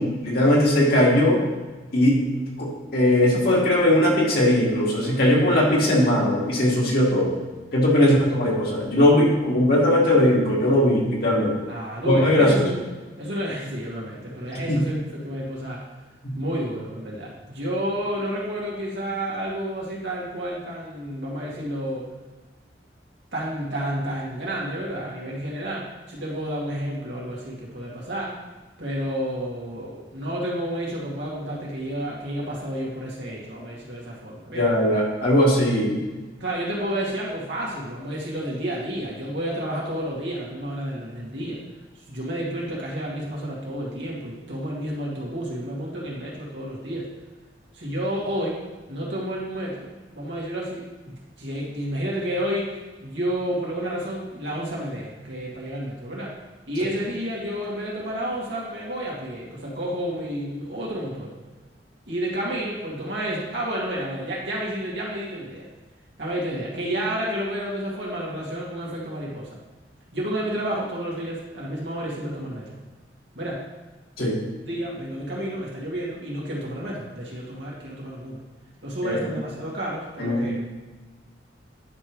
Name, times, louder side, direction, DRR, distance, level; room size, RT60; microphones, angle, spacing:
voice 1, 0.0-1.4 1.9-7.4 7.7-11.5 12.1-12.6 14.7-14.8 16.2-16.4 34.6-36.0 74.2-74.4 79.0-79.2 80.2-80.5, left 1 dB, 60° left, -4 dB, 2.1 m, -19 dB
voice 2, 11.7-12.8 13.2-15.0 15.2-15.8 16.3-22.1 23.3-28.3 28.8-34.7 36.4-41.6 42.1-47.1 47.7-48.6 48.9-49.9 50.1-52.7 53.0-56.3 56.7-61.3 62.1-65.7 66.2-69.6 70.1-72.8 73.3-73.6 74.6-78.4 78.8-80.6, equal, 90° right, -5 dB, 2.3 m, -30 dB
10.0 x 5.2 x 3.2 m, 1.3 s
head